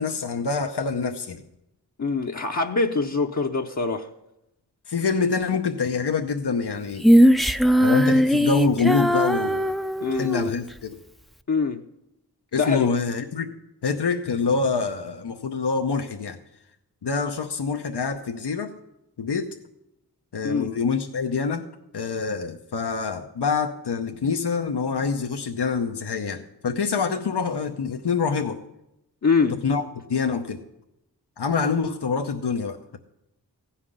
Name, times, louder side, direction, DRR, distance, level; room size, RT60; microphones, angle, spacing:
voice 1, 0.0-1.4 4.9-7.1 7.8-9.6 10.1-11.0 12.5-13.5 13.8-16.4 17.0-18.7 19.2-19.6 20.3-21.6 21.9-28.6 29.6-29.8 30.1-30.6 31.4-33.0, left 5 dB, 90° left, 0.8 m, -26 dB
voice 2, 2.0-4.1 10.0-10.3 11.5-11.8 12.6-12.9 20.4-20.7 29.2-29.6, left 4 dB, 45° left, 0.7 m, -24 dB
Female singing, 7.0-10.5, equal, ahead, 0.4 m, -19 dB
16.0 x 5.8 x 9.9 m
wide cardioid pair, 65°, 39 cm